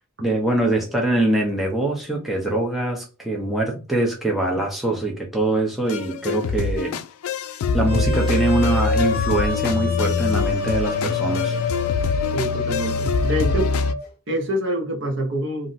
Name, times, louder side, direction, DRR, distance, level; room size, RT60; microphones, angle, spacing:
voice 1, 0.2-7.0 7.7-11.6, right 2 dB, ahead, 0.4 m, -23 dB
sound 1, 5.9-13.9, left 5 dB, 90° left, 0.3 m, -24 dB
sound 2, 7.9-14.0, left 3 dB, 45° left, 0.7 m, -27 dB
voice 2, 12.0-13.7 14.3-15.7, right 1 dB, 55° right, 0.8 m, -26 dB
2.5 x 2.0 x 3.9 m
head